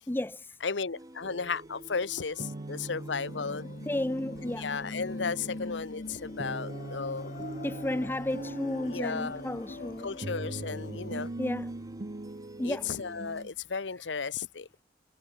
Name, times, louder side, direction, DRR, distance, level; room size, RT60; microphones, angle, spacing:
voice 1, 0.1-0.4 3.9-4.7 7.6-10.1 11.4-11.7 12.6-12.9, left 1 dB, 10° left, 0.6 m, -32 dB
voice 2, 0.6-3.7 4.6-7.3 8.8-9.4 10.0-11.3 12.6-14.7, left 5 dB, 80° left, 0.9 m, -34 dB
sound 1, 0.9-13.5, right 1 dB, 20° right, 6.1 m, -51 dB
sound 2, 1.2-13.5, right 2 dB, 40° right, 0.8 m, -42 dB
sound 3, 3.3-11.3, left 2 dB, 45° left, 1.0 m, -43 dB
head